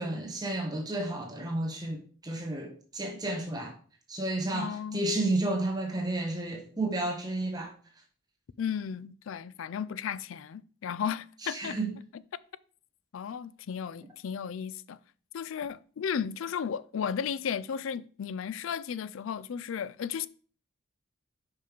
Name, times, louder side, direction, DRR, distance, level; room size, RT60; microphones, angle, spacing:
voice 1, 0.0-3.7 4.1-7.7 11.4-11.9, right 2 dB, 20° right, 1.4 m, -32 dB
voice 2, 4.5-5.1 8.6-11.8 13.1-15.0 15.3-20.3, left 7 dB, 70° left, 0.4 m, -34 dB
5.5 x 5.2 x 5.1 m
head